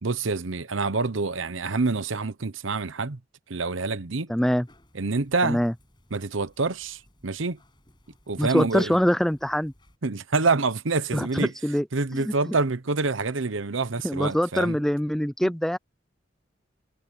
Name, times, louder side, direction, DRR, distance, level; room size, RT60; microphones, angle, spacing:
voice 1, 0.0-3.2 3.5-4.3 4.9-5.6 6.1-7.6 8.3-9.0 10.0-11.5 11.9-14.8 15.4-15.5, right 3 dB, 80° right, 1.0 m, -27 dB
voice 2, 4.3-4.7 5.4-5.7 8.4-9.7 11.1-11.9 12.1-12.6 14.0-15.8, equal, ahead, 0.3 m, -24 dB
sound 1, 4.6-10.0, left 1 dB, 25° left, 6.3 m, -59 dB
head